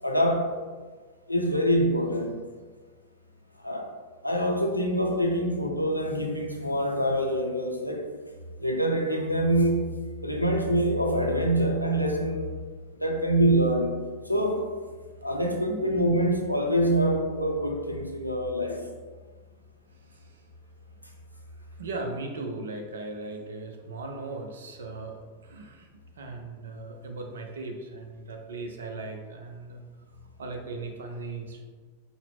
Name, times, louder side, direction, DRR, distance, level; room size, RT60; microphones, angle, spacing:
voice 1, 0.0-0.6 1.3-2.4 3.6-3.9 4.2-8.0 8.6-9.9 10.2-12.5 13.0-14.0 14.3-14.7 15.2-18.8, right 1 dB, 90° left, 0.5 m, -25 dB
voice 2, 15.6-16.0 19.6-19.7 20.0-20.4 21.8-25.9 26.2-29.8 30.4-31.6, right 3 dB, 65° right, 0.5 m, -38 dB
4.6 x 2.1 x 3.4 m
figure-of-eight pair, 90°, 0 cm